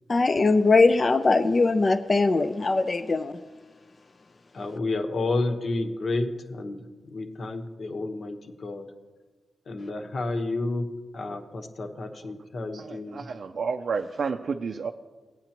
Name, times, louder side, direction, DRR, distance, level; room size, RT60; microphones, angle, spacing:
voice 1, 0.1-3.3, left 3 dB, 35° left, 9 dB, 0.4 m, -21 dB
voice 2, 4.5-8.9 9.7-10.9 11.1-13.2, left 2 dB, 60° left, 5 dB, 1.0 m, -31 dB
voice 3, 12.7-14.9, right 5 dB, 65° right, 5 dB, 0.4 m, -31 dB
17.0 x 9.1 x 2.9 m, 1.3 s
wide cardioid pair, 100°, 0 cm